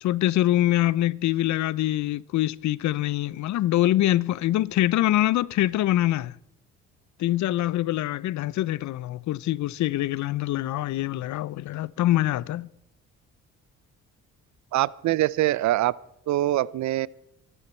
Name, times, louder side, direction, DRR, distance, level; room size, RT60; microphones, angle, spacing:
voice 1, 0.0-6.4 7.2-12.7, left 14 dB, 70° left, 0.5 m, -24 dB
voice 2, 14.7-16.0 16.3-17.1, right 15 dB, 70° right, 0.5 m, -23 dB
23.5 x 11.0 x 4.3 m
cardioid pair, 90°, 30 cm